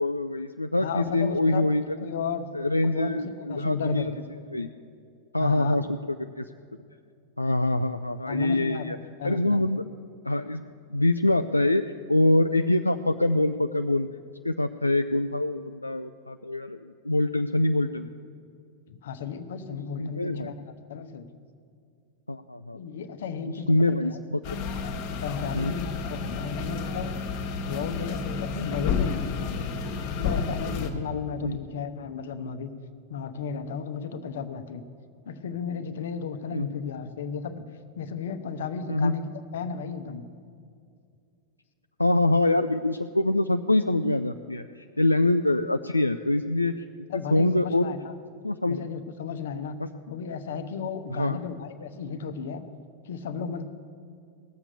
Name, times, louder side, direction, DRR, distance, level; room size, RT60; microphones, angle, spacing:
voice 1, 0.0-2.0 2.5-4.1 4.5-4.7 5.3-5.9 6.2-6.5 7.4-9.0 9.2-9.8 10.2-11.8 12.1-14.1 14.4-18.1 20.0-20.5 22.3-22.8 23.7-24.7 25.5-25.7 28.0-28.1 31.4-31.6 36.5-36.7 38.9-39.1 42.0-46.7 47.3-47.9 48.4-48.8 49.8-49.9 51.1-51.4, left 2 dB, 85° left, 8 dB, 0.3 m, -24 dB
voice 2, 0.8-1.6 2.0-2.5 2.8-3.2 3.5-4.2 5.4-5.8 8.3-8.9 9.2-9.6 18.9-20.6 20.9-21.3 22.7-24.2 25.2-27.1 27.6-29.7 30.1-32.7 33.1-34.8 35.3-37.6 38.0-40.2 47.1-48.1 48.7-49.8 50.1-52.6 53.0-53.6, left 6 dB, 60° left, 9 dB, 0.8 m, -34 dB
sound 1, 24.4-30.9, left 5 dB, 45° left, 1.3 m, -31 dB
18.0 x 7.3 x 6.7 m, 2.4 s
figure-of-eight pair, 90°, 0 cm